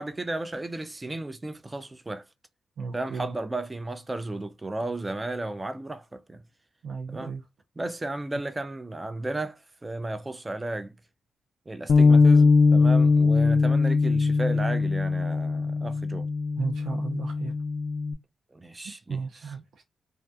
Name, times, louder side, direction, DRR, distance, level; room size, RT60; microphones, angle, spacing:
voice 1, 0.0-2.2 2.9-6.4 7.1-7.3 7.8-10.9 11.7-16.3 18.5-19.2, right 2 dB, 20° right, 0.3 m, -34 dB
voice 2, 2.8-3.3 6.8-7.4 16.6-17.5 19.1-19.8, right 5 dB, 75° right, 0.6 m, -34 dB
Bass guitar, 11.9-18.1, left 4 dB, 70° left, 0.3 m, -21 dB
2.3 x 2.3 x 2.5 m
cardioid pair, 65°, 0 cm